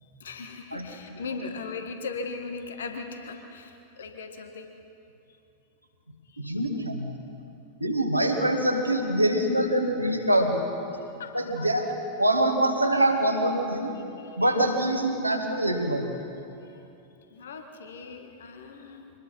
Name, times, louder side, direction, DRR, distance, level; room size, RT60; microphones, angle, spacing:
voice 1, 0.0-4.7 6.3-6.5 11.2-11.7 14.2-14.4 16.6-16.8 17.3-19.1, left 4 dB, 65° left, 5 dB, 1.8 m, -39 dB
voice 2, 6.4-7.1 7.8-10.7 11.3-11.9 12.2-14.0 14.4-16.3, right 1 dB, 85° right, 2 dB, 2.2 m, -24 dB
25.0 x 20.0 x 5.7 m, 2.8 s
figure-of-eight pair, 90°, 0 cm